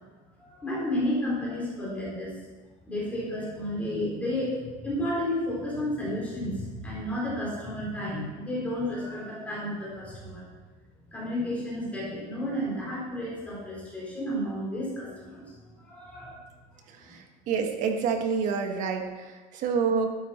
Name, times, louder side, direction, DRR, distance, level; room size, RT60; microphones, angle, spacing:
voice 1, 0.4-2.3 2.9-10.4 11.1-15.4 15.8-16.4 17.0-17.1, left 1 dB, 10° left, -7 dB, 4.2 m, -32 dB
voice 2, 16.9-20.2, right 5 dB, 45° right, 4 dB, 1.5 m, -28 dB
13.0 x 9.0 x 4.4 m, 1.3 s
cardioid pair, 175°, 18 cm